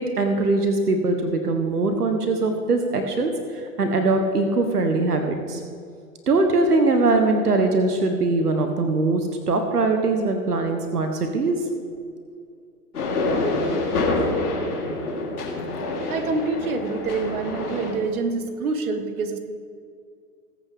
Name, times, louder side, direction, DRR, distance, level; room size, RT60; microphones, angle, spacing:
voice 1, 0.0-5.6 6.3-11.5, right 3 dB, 85° right, 5 dB, 1.3 m, -22 dB
sound 1, 12.9-17.9, left 2 dB, 80° left, 3.5 m, -26 dB
voice 2, 16.1-19.4, right 4 dB, 70° right, 8 dB, 1.4 m, -26 dB
20.5 x 8.7 x 3.6 m, 2.3 s
figure-of-eight pair, 100°, 45 cm